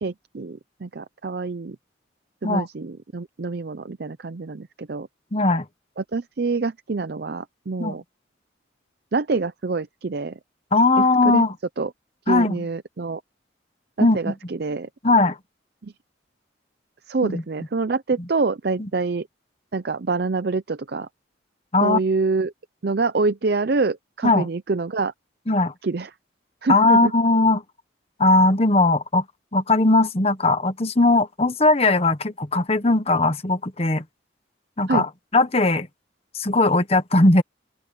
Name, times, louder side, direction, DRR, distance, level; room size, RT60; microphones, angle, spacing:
voice 1, 0.0-1.8 2.4-5.1 6.0-8.0 9.1-10.4 11.0-11.4 11.8-11.9 12.3-13.2 14.0-14.9 15.8-15.9 17.1-19.3 19.7-21.1 21.8-22.5 22.8-25.1 25.8-26.1 26.6-27.1 34.9-35.0, right 3 dB, 55° right, 0.5 m, -26 dB
voice 2, 5.3-5.6 7.8-7.9 10.7-11.5 12.3-12.6 14.0-14.2 15.0-15.4 17.2-17.4 21.7-22.0 24.2-24.5 25.5-25.7 26.7-27.6 28.2-29.2 29.5-34.0 34.8-35.9 36.3-37.4, left 2 dB, 35° left, 1.1 m, -19 dB
open air
head